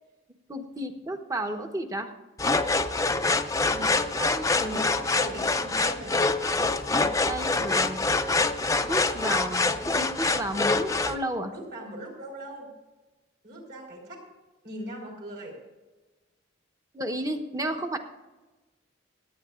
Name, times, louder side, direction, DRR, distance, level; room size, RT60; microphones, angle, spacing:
voice 1, 0.5-2.1 4.2-4.8 6.9-8.1 8.8-11.5 16.9-18.0, right 1 dB, 20° right, 5 dB, 1.1 m, -33 dB
sound 1, 2.4-11.2, left 3 dB, 15° left, 0.6 m, -25 dB
voice 2, 3.6-4.1 4.6-6.4 11.5-12.7 13.4-14.3 14.6-15.6, right 1 dB, 55° right, -1 dB, 4.3 m, -39 dB
26.5 x 9.4 x 2.5 m, 1.2 s
head